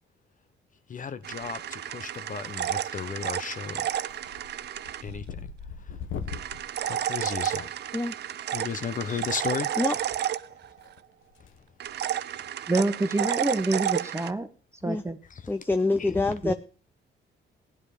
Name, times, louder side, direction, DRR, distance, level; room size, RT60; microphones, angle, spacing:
voice 1, 0.9-4.0 5.0-5.5 5.8-6.0 6.8-7.7 8.5-9.8 15.3-15.5 16.0-16.1 16.5-16.6, left 6 dB, 40° left, 0.9 m, -35 dB
sound 1, 1.2-5.0 6.3-10.9 11.8-14.3, right 11 dB, 60° right, 0.6 m, -31 dB
sound 2, 1.3-1.8 2.1-2.7 3.0-3.3 3.6-8.0 9.4-9.5 10.8-11.6 11.9-12.1 12.6-12.7 13.0-13.1 13.4-13.6 13.9-14.0 15.5-15.8, left 6 dB, 85° left, 1.4 m, -41 dB
voice 2, 12.7-14.5 14.8-15.2 16.4-16.5, right 2 dB, 15° right, 1.4 m, -26 dB
voice 3, 15.5-16.5, left 2 dB, 10° left, 0.6 m, -26 dB
16.0 x 9.9 x 5.1 m
cardioid pair, 90°, 20 cm